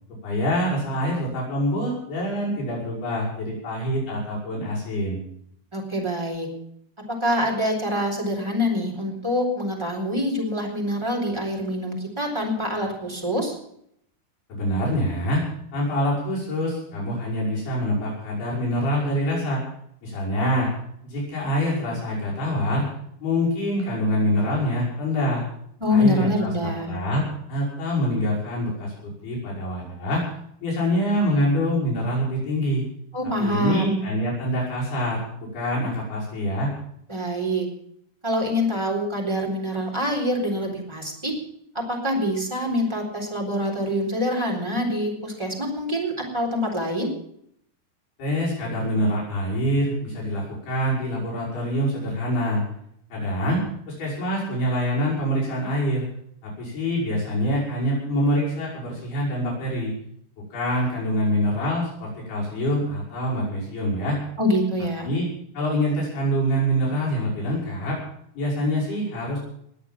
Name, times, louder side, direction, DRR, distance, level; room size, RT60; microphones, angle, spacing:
voice 1, 0.2-5.2 14.5-15.4 15.7-19.6 20.0-20.7 21.0-22.9 23.2-25.4 25.9-30.2 30.6-32.8 33.4-36.7 48.2-52.6 53.1-53.6 53.9-56.1 56.4-59.9 60.5-64.2 65.0-65.3 65.5-68.0 68.4-69.4, equal, 70° left, -5 dB, 7.5 m, -25 dB
voice 2, 5.7-6.5 7.1-13.5 25.8-27.0 33.1-34.0 37.1-37.7 38.2-41.3 41.7-47.1 64.4-65.1, left 1 dB, 5° right, 0 dB, 3.6 m, -25 dB
21.0 x 8.3 x 7.3 m, 0.70 s
omnidirectional pair, 4.8 m